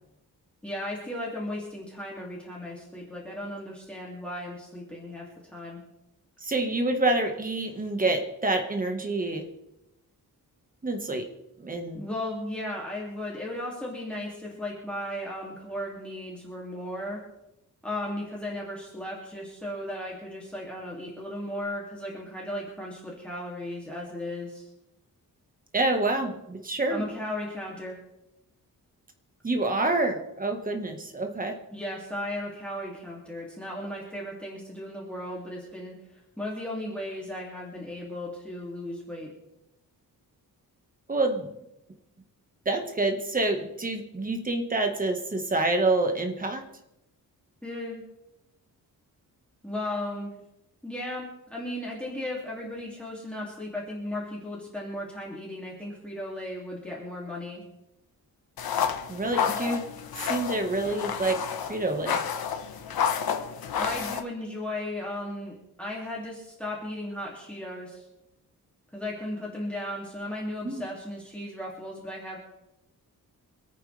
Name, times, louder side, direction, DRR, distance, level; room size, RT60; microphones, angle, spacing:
voice 1, 0.6-5.8 11.9-17.2 17.8-24.7 26.9-28.0 31.7-36.0 36.4-39.3 47.6-48.0 49.6-50.3 50.8-57.6 63.8-68.0 68.9-72.4, left 1 dB, 5° left, -4 dB, 2.7 m, -36 dB
voice 2, 6.4-9.5 10.8-11.3 11.6-12.0 25.7-27.0 29.4-31.6 41.1-41.5 42.6-46.7 59.1-59.9 60.2-62.2 70.6-70.8, right 2 dB, 25° right, 4 dB, 1.6 m, -27 dB
sound 1, 58.6-64.2, left 7 dB, 85° left, 1.3 m, -30 dB
27.0 x 9.0 x 3.4 m, 0.89 s
wide cardioid pair, 170°, 36 cm